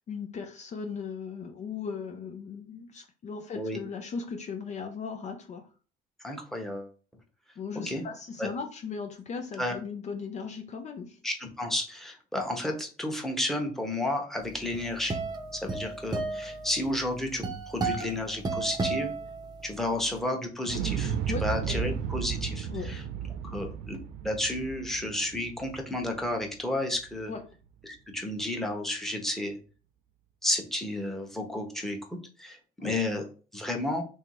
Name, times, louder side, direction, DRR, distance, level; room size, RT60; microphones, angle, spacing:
voice 1, 0.1-5.7 7.6-11.2 15.6-15.8 21.3-22.0 22.7-22.9 27.3-27.4 32.8-32.9, left 5 dB, 45° left, 5 dB, 0.6 m, -38 dB
voice 2, 6.2-6.9 7.9-8.0 8.4-8.5 9.6-9.8 11.2-15.2 15.5-19.1 19.6-23.0 23.4-24.0 24.2-27.3 27.8-29.6 30.4-32.0 32.4-33.2 33.5-34.0, left 1 dB, ahead, 2 dB, 1.0 m, -32 dB
sound 1, 14.5-19.9, right 3 dB, 25° right, 0.7 m, -33 dB
Explosion, 20.7-26.7 27.0-27.1, right 8 dB, 85° right, 0.5 m, -34 dB
3.4 x 2.7 x 4.6 m, 0.37 s
cardioid pair, 110°, 17 cm